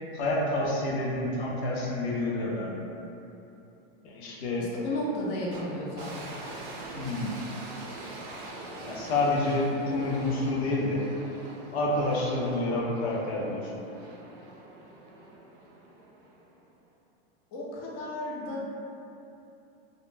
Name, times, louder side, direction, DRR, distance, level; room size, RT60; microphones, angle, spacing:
voice 1, 0.1-2.8 4.0-4.7 6.9-7.3 8.8-11.0 11.7-13.7, left 2 dB, 85° left, -4 dB, 0.7 m, -28 dB
voice 2, 4.6-6.4 17.5-18.6, left 1 dB, 35° left, -6 dB, 0.5 m, -34 dB
sound 1, 5.5-16.7, right 2 dB, 55° right, 0.5 m, -44 dB
2.1 x 2.1 x 3.1 m, 2.8 s
supercardioid pair, 160°, 31 cm